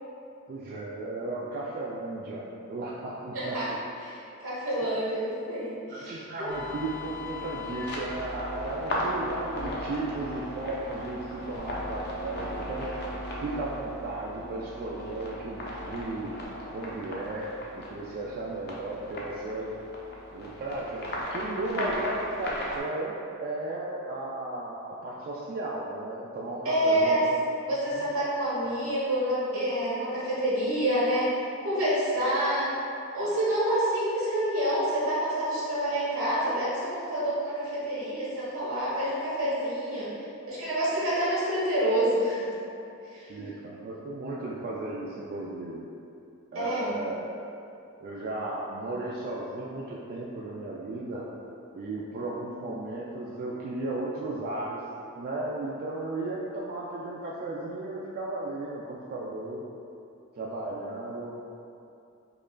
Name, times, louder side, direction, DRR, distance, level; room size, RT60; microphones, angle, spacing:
voice 1, 0.5-3.8 4.8-5.1 5.9-12.9 13.4-16.4 16.7-17.5 17.7-19.7 20.3-27.2 28.0-28.1 43.3-45.9 46.5-47.3 48.0-51.2 51.7-54.8 55.1-59.6 60.4-61.5, right 2 dB, 45° right, -5 dB, 0.3 m, -35 dB
voice 2, 3.3-3.7 4.0-6.5 26.6-27.2 27.7-32.7 33.1-40.1 40.5-42.4 43.1-43.3 46.5-46.9, right 1 dB, 80° right, -9 dB, 1.2 m, -27 dB
sound 1, 6.5-22.8, left 1 dB, 50° left, 0.6 m, -36 dB
4.9 x 2.4 x 2.2 m, 2.6 s
head